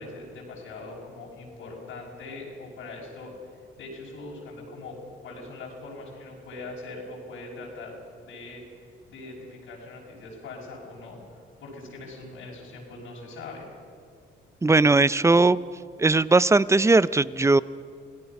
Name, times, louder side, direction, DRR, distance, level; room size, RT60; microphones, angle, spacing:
voice 1, 0.0-3.3 3.8-8.6 9.1-11.2 11.6-13.7, left 2 dB, 85° left, -4 dB, 5.9 m, -41 dB
voice 2, 14.6-15.6 16.0-17.6, right 3 dB, 15° right, 18 dB, 0.5 m, -19 dB
26.5 x 17.5 x 5.9 m, 2.2 s
cardioid pair, 90°, 20 cm